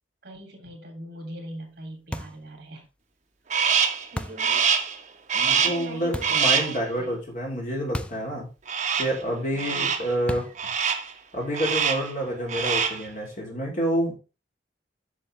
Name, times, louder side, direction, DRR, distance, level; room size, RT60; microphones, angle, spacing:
voice 1, 0.2-2.8 4.1-4.6 5.5-7.2 9.5-9.9, right 1 dB, 60° right, 3 dB, 3.0 m, -41 dB
sound 1, 2.1-2.5 4.2-4.5 6.1-6.5 7.9-8.3 8.6-8.7 10.3-10.7, left 1 dB, 5° left, 0.4 m, -34 dB
Crow, 3.5-4.1 4.4-5.0 5.3-5.9 6.2-6.8 8.7-9.2 9.6-10.1 10.6-11.1 11.5-12.1 12.4-13.1, right 6 dB, 40° right, 1.1 m, -24 dB
voice 2, 5.3-8.5 9.0-10.5 11.3-14.1, equal, 45° left, -1 dB, 3.2 m, -28 dB
8.5 x 6.3 x 3.3 m, 0.31 s
head